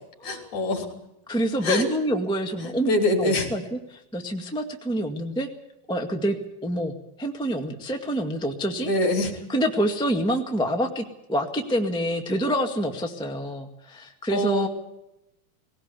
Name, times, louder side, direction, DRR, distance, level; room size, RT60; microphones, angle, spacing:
voice 1, 0.2-0.9 1.6-1.9 2.6-3.5 8.8-9.3 14.3-14.7, left 2 dB, 55° left, 3 dB, 4.6 m, -24 dB
voice 2, 1.3-2.9 3.2-3.6 4.1-5.5 5.9-6.3 6.6-8.9 9.5-14.7, equal, 5° left, 3 dB, 0.6 m, -27 dB
20.0 x 18.0 x 8.4 m, 0.85 s
omnidirectional pair, 4.0 m